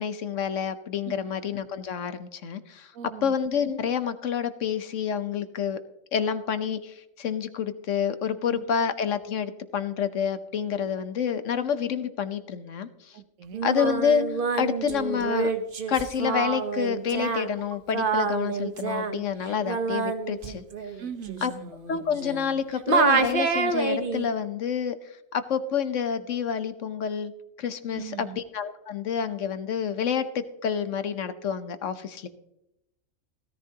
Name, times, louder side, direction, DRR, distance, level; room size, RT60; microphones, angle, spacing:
voice 1, 0.0-2.9 3.2-5.8 6.1-12.9 13.6-14.3 14.5-15.5 15.9-20.6 21.4-21.5 21.9-24.9 25.3-27.3 27.6-30.3 30.6-32.3, left 7 dB, 70° left, 1.3 m, -28 dB
voice 2, 2.9-3.3 8.5-8.6 13.1-13.6 21.0-21.7 27.9-28.4, right 8 dB, 80° right, 1.2 m, -39 dB
Singing, 13.5-22.6 22.9-24.3, right 4 dB, 45° right, 1.1 m, -27 dB
16.5 x 14.0 x 2.9 m
omnidirectional pair, 1.4 m